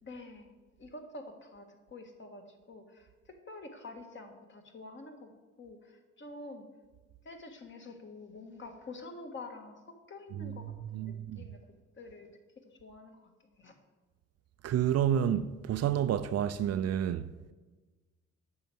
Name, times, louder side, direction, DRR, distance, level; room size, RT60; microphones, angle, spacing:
voice 1, 0.0-6.7 7.2-11.6 11.9-12.3 12.6-13.8, left 2 dB, 40° left, 1.7 m, -48 dB
voice 2, 10.9-11.4 14.6-17.3, right 10 dB, 55° right, 0.5 m, -29 dB
9.2 x 5.6 x 7.8 m
cardioid pair, 90°, 30 cm